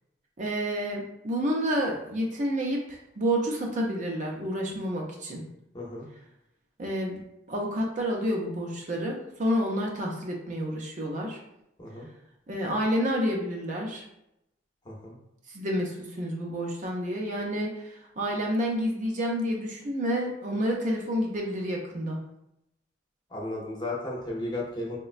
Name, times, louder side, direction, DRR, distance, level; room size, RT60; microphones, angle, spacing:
voice 1, 0.4-5.4 6.8-7.2 7.5-11.4 12.5-14.0 15.5-22.2, equal, 40° right, -1 dB, 0.4 m, -29 dB
voice 2, 5.7-6.1 11.8-12.1 14.8-15.2 23.3-25.0, left 2 dB, 20° left, -3 dB, 0.6 m, -34 dB
3.9 x 2.1 x 2.4 m, 0.83 s
head